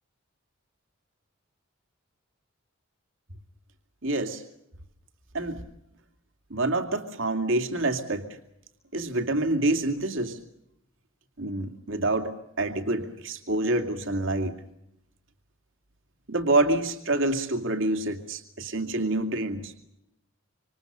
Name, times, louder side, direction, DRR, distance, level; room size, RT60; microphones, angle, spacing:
voice 1, 4.0-4.4 5.3-5.6 6.5-8.3 8.9-10.4 11.4-14.5 16.3-19.7, right 2 dB, 65° right, 5 dB, 2.5 m, -27 dB
27.0 x 26.0 x 6.8 m, 0.82 s
head